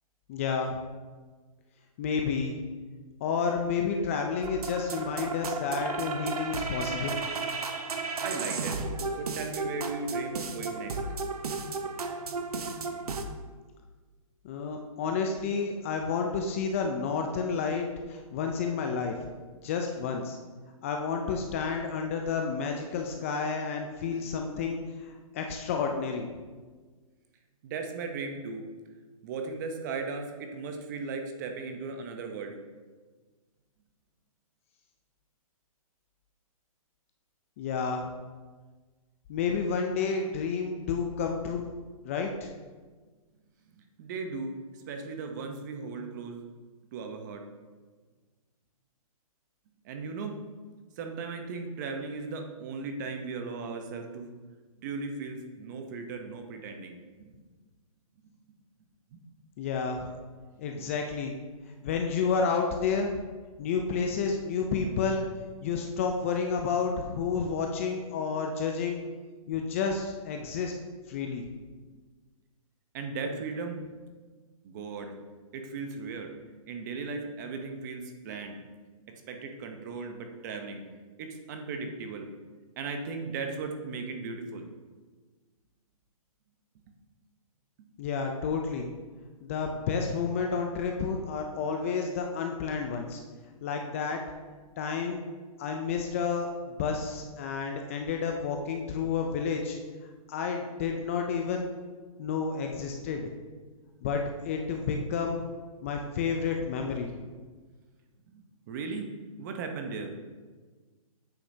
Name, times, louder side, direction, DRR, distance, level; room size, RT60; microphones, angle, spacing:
voice 1, 0.3-0.8 2.0-2.6 3.2-7.2 14.4-19.2 19.6-20.4 20.8-26.3 37.6-38.1 39.3-41.6 42.0-42.5 59.6-60.1 60.6-61.3 61.8-63.2 63.6-65.3 65.6-69.0 69.5-70.7 71.1-71.4 88.0-88.9 89.4-93.2 93.6-94.2 94.8-95.2 95.6-99.8 100.3-101.7 102.2-103.3 104.0-105.4 105.8-107.1, left 5 dB, 25° left, 3 dB, 0.4 m, -30 dB
sound 1, 4.4-13.2, right 3 dB, 85° right, 0.9 m, -34 dB
voice 2, 8.2-11.0 27.6-28.6 29.2-32.6 43.7-44.6 44.9-46.5 46.9-47.4 49.8-50.4 51.0-54.3 54.8-57.3 59.1-59.2 60.8-60.9 72.9-73.9 74.6-75.1 75.5-76.4 76.7-78.6 79.0-80.8 81.2-82.3 82.8-84.7 87.8-87.9 108.3-110.2, right 4 dB, 30° right, 4 dB, 0.7 m, -37 dB
8.5 x 6.3 x 2.7 m, 1.4 s
hypercardioid pair, 155°, 19 cm